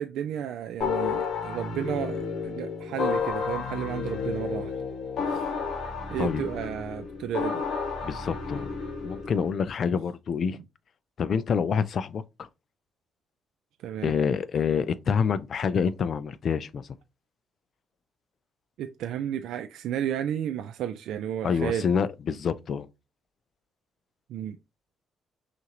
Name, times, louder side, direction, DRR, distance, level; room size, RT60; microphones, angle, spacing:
voice 1, 0.0-4.7 5.3-5.5 6.1-7.6 10.5-10.6 13.8-14.2 18.8-21.9 24.3-24.6, right 10 dB, 80° right, 0.3 m, -32 dB
sound 1, 0.8-9.5, left 5 dB, 75° left, 1.1 m, -31 dB
voice 2, 8.0-8.7 9.0-10.6 11.2-12.2 14.0-16.8 21.4-22.9, left 6 dB, 55° left, 0.4 m, -27 dB
5.9 x 2.5 x 2.9 m
cardioid pair, 90°, 0 cm